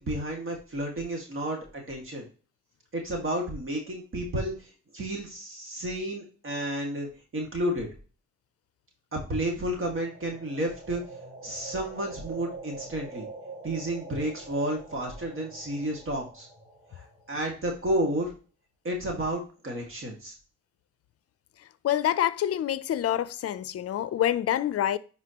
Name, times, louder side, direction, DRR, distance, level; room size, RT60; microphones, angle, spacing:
voice 1, 0.0-2.3 2.9-7.1 7.3-7.9 9.1-11.0 11.4-13.3 13.6-16.5 16.9-18.3 18.8-20.3, right 1 dB, 45° right, 2.1 m, -31 dB
sound 1, 9.7-17.7, right 3 dB, 15° right, 3.7 m, -45 dB
voice 2, 21.8-25.0, left 11 dB, 50° left, 0.6 m, -26 dB
9.5 x 4.4 x 3.0 m
cardioid pair, 90°, 30 cm